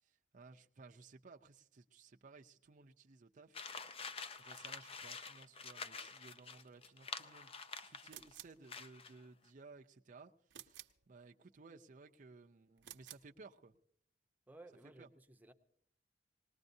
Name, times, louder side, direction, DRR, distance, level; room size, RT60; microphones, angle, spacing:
voice 1, 0.0-3.6 4.4-13.8 15.0-15.1, right 4 dB, 45° right, 0.5 m, -59 dB
sound 1, 3.5-8.3 8.7-9.2, left 5 dB, 30° left, 0.5 m, -48 dB
sound 2, 8.1-8.6 10.5-11.0 12.8-13.3, right 12 dB, 80° right, 0.7 m, -54 dB
voice 2, 14.5-15.5, right 2 dB, 10° right, 0.7 m, -57 dB
20.5 x 19.0 x 2.7 m
head